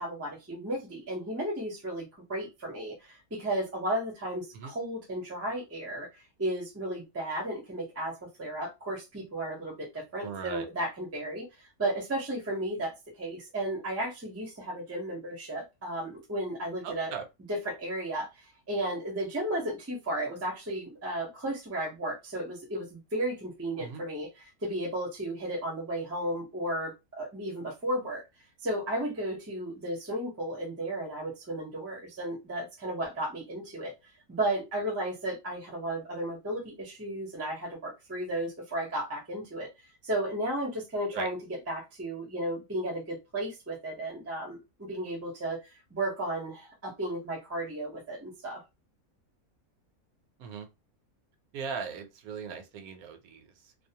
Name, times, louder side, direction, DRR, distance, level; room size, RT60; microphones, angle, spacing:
voice 1, 0.0-17.1 17.5-28.2 28.6-33.9 34.3-39.7 40.0-41.4 41.7-45.6 45.9-48.6, right 1 dB, 20° right, 0.4 m, -34 dB
voice 2, 10.2-10.6 16.8-17.2 23.8-24.0 41.1-41.3 50.4-50.7 51.5-53.9, right 6 dB, 75° right, 1.1 m, -39 dB
2.6 x 2.0 x 2.7 m
omnidirectional pair, 1.6 m